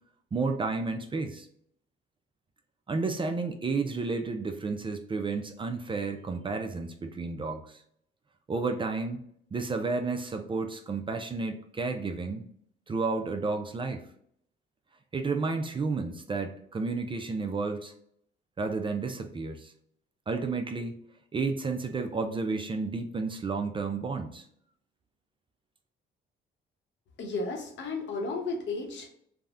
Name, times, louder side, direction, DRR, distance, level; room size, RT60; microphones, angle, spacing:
voice 1, 0.3-1.5 2.9-7.8 8.5-9.2 9.5-12.4 12.9-14.0 15.1-17.9 18.6-19.7 20.3-21.0 21.3-24.5, right 4 dB, 25° right, 6 dB, 0.3 m, -31 dB
voice 2, 27.2-29.1, left 3 dB, 70° left, 3 dB, 0.8 m, -33 dB
3.5 x 2.1 x 2.4 m, 0.68 s
cardioid pair, 90°, 20 cm